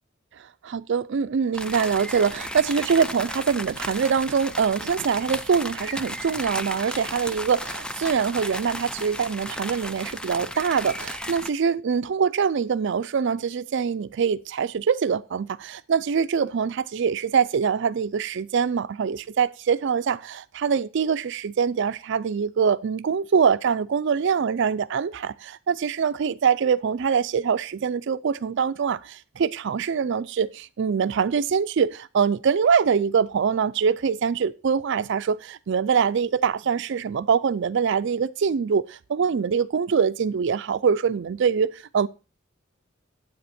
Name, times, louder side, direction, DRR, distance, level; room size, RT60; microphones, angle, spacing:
voice 1, 0.7-42.1, right 6 dB, 65° right, 0.4 m, -24 dB
sound 1, 1.5-11.5, left 1 dB, 5° left, 0.5 m, -34 dB
9.6 x 8.3 x 4.3 m
head